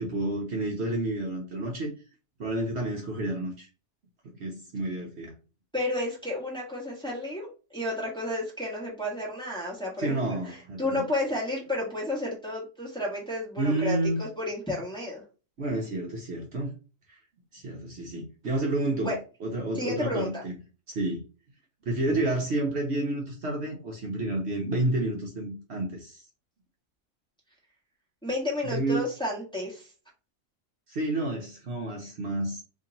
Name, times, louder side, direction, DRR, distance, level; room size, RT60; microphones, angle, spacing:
voice 1, 0.0-1.9 2.4-3.7 4.3-5.3 10.0-11.0 13.6-14.2 15.6-16.7 17.5-19.1 19.4-20.6 20.9-21.2 21.9-26.2 28.6-29.1 30.9-32.6, right 2 dB, 60° right, 1.0 m, -30 dB
voice 2, 5.7-15.2 19.0-19.2 19.7-20.4 28.2-29.9, left 1 dB, 5° left, 1.3 m, -32 dB
2.9 x 2.8 x 3.9 m
omnidirectional pair, 1.4 m